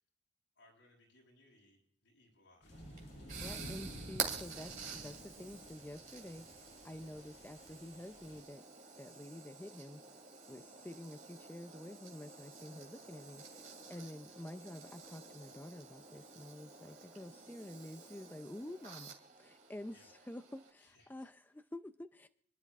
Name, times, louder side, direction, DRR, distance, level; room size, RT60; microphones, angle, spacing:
voice 1, 0.6-2.8 13.8-14.1 19.9-20.1 20.8-21.3, left 1 dB, 80° left, -2 dB, 7.0 m, -66 dB
sound 1, 2.6-8.4, equal, 60° left, 3.0 m, -51 dB
sound 2, 2.7-20.7, right 5 dB, 45° right, 2.6 m, -49 dB
voice 2, 3.3-8.6 9.0-10.0 10.5-13.6 13.9-19.1 19.4-22.3, left 1 dB, 10° left, 9 dB, 0.4 m, -49 dB
28.0 x 11.5 x 2.4 m, 0.65 s
head